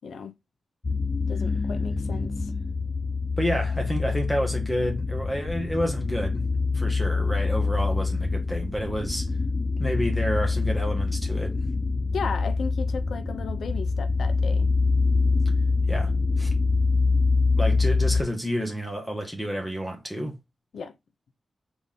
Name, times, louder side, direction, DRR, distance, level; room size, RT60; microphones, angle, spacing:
sound 1, 0.8-18.2, left 3 dB, 30° left, 0.5 m, -25 dB
voice 1, 1.3-2.5 12.1-14.7 20.7-20.9, left 5 dB, 80° left, 0.7 m, -35 dB
voice 2, 3.4-6.5 6.7-9.3 9.8-11.6 15.9-16.5 17.6-20.3, equal, 5° left, 1.4 m, -29 dB
4.0 x 3.5 x 3.6 m
wide cardioid pair, 165°, 0 cm